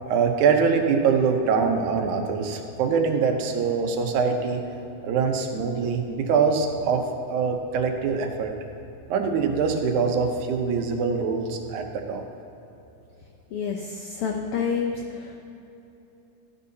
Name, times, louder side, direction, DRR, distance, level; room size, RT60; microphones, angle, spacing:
voice 1, 0.1-4.6 5.0-8.5 9.1-12.2, right 5 dB, 90° right, 4 dB, 2.3 m, -23 dB
voice 2, 13.5-15.4, left 6 dB, 85° left, 2 dB, 1.2 m, -29 dB
13.5 x 11.0 x 2.8 m, 2.9 s
omnidirectional pair, 3.3 m